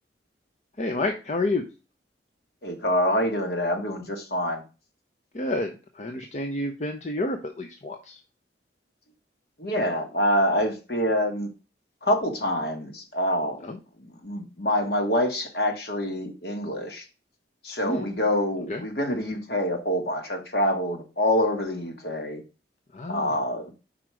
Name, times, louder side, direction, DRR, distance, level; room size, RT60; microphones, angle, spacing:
voice 1, 0.8-1.7 5.3-8.2 13.6-13.8 17.8-18.1 18.7-18.8 22.9-23.4, left 2 dB, 40° left, 5 dB, 0.6 m, -29 dB
voice 2, 2.6-4.6 9.6-11.5 12.0-13.6 14.2-17.0 17.6-22.4 23.1-23.7, left 1 dB, 60° left, 3 dB, 1.6 m, -26 dB
5.0 x 4.5 x 6.1 m, 0.32 s
head